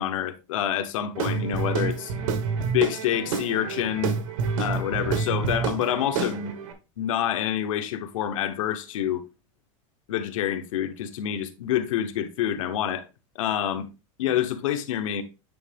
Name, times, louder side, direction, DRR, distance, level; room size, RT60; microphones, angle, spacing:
voice 1, 0.0-2.1 2.7-4.2 4.6-6.5 7.0-9.2 10.1-13.0 13.3-13.9 14.2-15.2, left 10 dB, 90° left, 1.1 m, -27 dB
Guitar / Drum, 1.1-6.7, right 5 dB, 80° right, 1.4 m, -28 dB
9.2 x 3.6 x 3.5 m
supercardioid pair, 175°, 17 cm